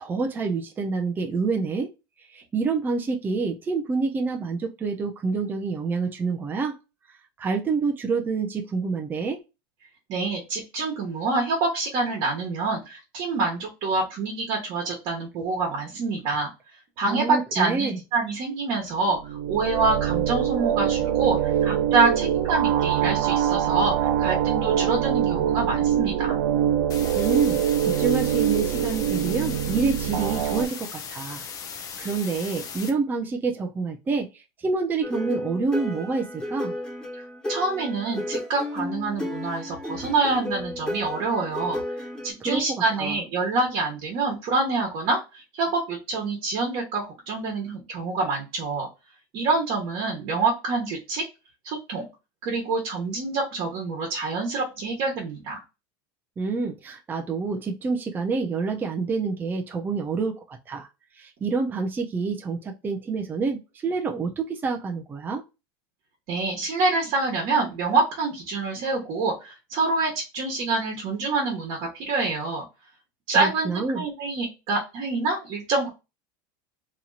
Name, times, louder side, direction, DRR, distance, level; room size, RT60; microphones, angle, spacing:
voice 1, 0.0-1.9 2.3-6.8 7.4-9.4 17.0-18.0 27.1-31.4 32.0-36.7 42.4-43.2 56.4-60.9 61.2-65.4 73.3-74.0, right 4 dB, 15° right, 2 dB, 0.5 m, -27 dB
voice 2, 10.1-16.5 17.0-26.4 37.5-41.8 42.2-48.9 49.3-51.2 51.6-52.1 52.4-55.6 66.3-72.6 73.3-73.7 73.9-75.9, right 3 dB, 50° right, -1 dB, 1.2 m, -26 dB
sound 1, 19.1-30.7, right 10 dB, 70° right, 0.4 m, -24 dB
sound 2, 26.9-32.9, left 6 dB, 30° left, 0.6 m, -38 dB
sound 3, 35.0-42.3, left 1 dB, 5° left, 1.1 m, -33 dB
2.9 x 2.7 x 2.4 m, 0.27 s
supercardioid pair, 140°, 12 cm